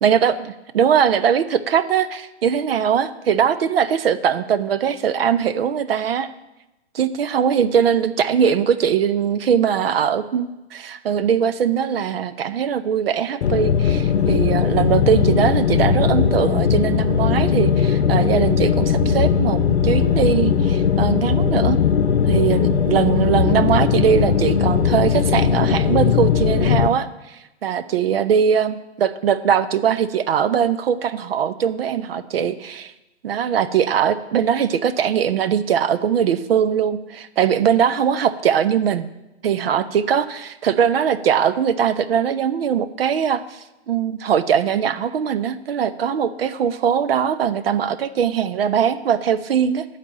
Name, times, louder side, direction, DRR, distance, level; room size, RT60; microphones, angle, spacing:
voice 1, 0.0-0.3 0.7-6.3 6.9-21.8 22.3-32.9 33.2-39.1 39.4-49.8, right 8 dB, 60° right, 14 dB, 0.6 m, -21 dB
sound 1, 13.4-26.9, left 7 dB, 70° left, 0.8 m, -18 dB
9.7 x 4.1 x 7.5 m, 0.99 s
hypercardioid pair, 140°, 33 cm